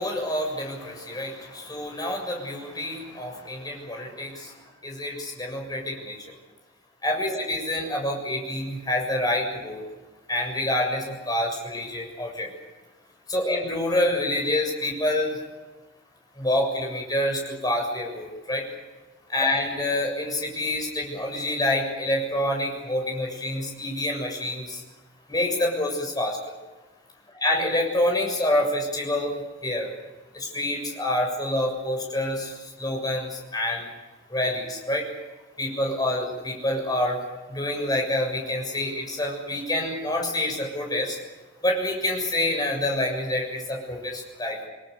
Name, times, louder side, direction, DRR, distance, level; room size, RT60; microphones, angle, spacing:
voice 1, 0.0-4.5 4.8-6.2 7.0-9.8 10.3-12.5 13.3-15.4 16.4-18.7 19.3-24.8 25.3-26.5 27.3-29.9 30.3-33.9 34.3-35.1 35.6-41.2 41.6-44.7, left 1 dB, 20° left, 1 dB, 7.2 m, -27 dB
29.0 x 20.0 x 6.9 m, 1.2 s
head